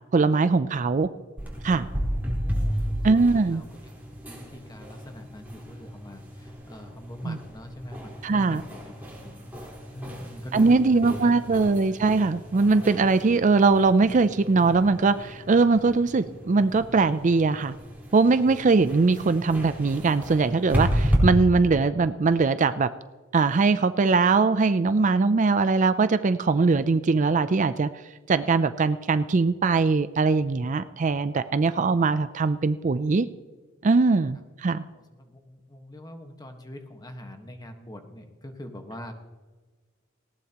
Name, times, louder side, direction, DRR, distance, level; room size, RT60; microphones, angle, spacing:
voice 1, 0.1-1.1 1.6-1.9 3.0-3.6 7.2-7.4 8.2-8.6 10.5-17.7 18.1-22.9 23.3-27.9 28.3-33.3 33.8-34.8, right 4 dB, 40° right, 12 dB, 0.4 m, -21 dB
sound 1, 1.4-21.2, equal, 10° right, 4.1 m, -33 dB
voice 2, 2.1-2.9 3.3-3.6 4.3-8.9 9.2-11.3 34.9-39.1, left 1 dB, 20° left, 5 dB, 1.4 m, -42 dB
19.0 x 17.0 x 3.0 m, 1.3 s
head